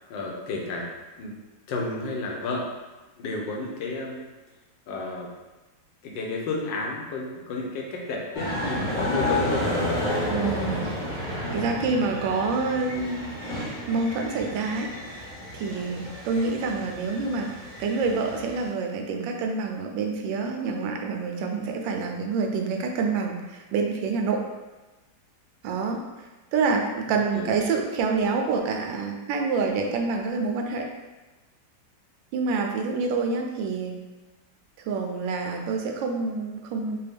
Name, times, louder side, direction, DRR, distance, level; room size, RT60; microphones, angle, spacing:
voice 1, 0.1-0.9 1.2-1.3 1.7-2.7 3.2-4.2 4.9-5.3 6.0-9.7 27.3-27.6, left 3 dB, 90° left, -1 dB, 1.4 m, -31 dB
sound 1, 8.3-18.7, left 1 dB, 20° left, 0.8 m, -31 dB
voice 2, 10.3-10.9 11.5-13.2 13.9-14.9 15.2-24.4 25.6-26.0 26.5-30.9 32.3-34.0 34.8-37.0, right 4 dB, 90° right, 2 dB, 1.3 m, -27 dB
4.1 x 2.2 x 3.4 m, 1.2 s
omnidirectional pair, 2.0 m